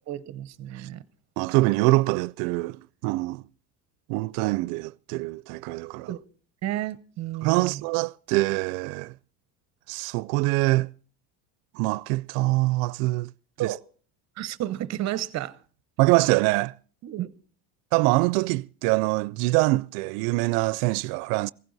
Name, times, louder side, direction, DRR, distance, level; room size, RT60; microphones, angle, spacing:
voice 1, 0.1-1.0 6.1-6.2 6.6-7.8 13.6-13.8 14.4-15.6 17.0-17.3, right 13 dB, 35° right, 0.8 m, -31 dB
voice 2, 1.4-3.4 4.1-6.1 7.4-9.1 9.9-10.9 11.7-13.3 13.6-13.7 16.0-16.7 17.9-21.5, right 22 dB, 85° right, 0.6 m, -24 dB
16.0 x 15.5 x 4.0 m
cardioid pair, 165°, 45 cm